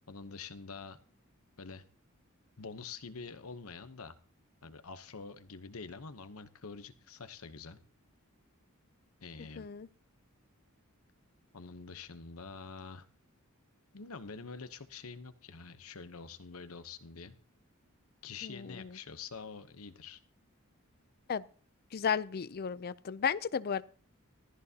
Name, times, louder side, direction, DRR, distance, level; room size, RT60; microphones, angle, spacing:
voice 1, 0.1-1.0 1.6-1.8 2.6-4.2 4.6-7.8 9.2-9.7 11.5-13.1 13.9-17.3 18.2-20.2, left 5 dB, 75° left, 0.9 m, -46 dB
voice 2, 9.6-9.9 18.4-18.9 21.3-21.4 21.9-23.8, left 7 dB, 45° left, 0.5 m, -34 dB
15.0 x 14.5 x 2.8 m
head